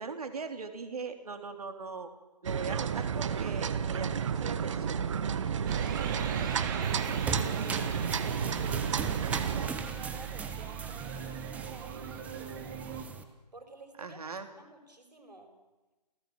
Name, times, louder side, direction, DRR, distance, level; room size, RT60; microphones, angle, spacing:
voice 1, 0.0-2.1 2.4-5.0 14.0-14.5, right 4 dB, 65° right, 7 dB, 3.1 m, -40 dB
sound 1, 2.5-9.7, right 7 dB, 45° right, 1.4 m, -31 dB
sound 2, 5.7-13.0, right 7 dB, 30° right, 2.5 m, -39 dB
voice 2, 6.3-14.2 14.5-15.5, right 2 dB, 80° right, 4 dB, 5.6 m, -52 dB
sound 3, 6.8-13.2, right 4 dB, 5° right, 1.1 m, -40 dB
28.5 x 16.5 x 7.6 m, 1.1 s
figure-of-eight pair, 140°, 21 cm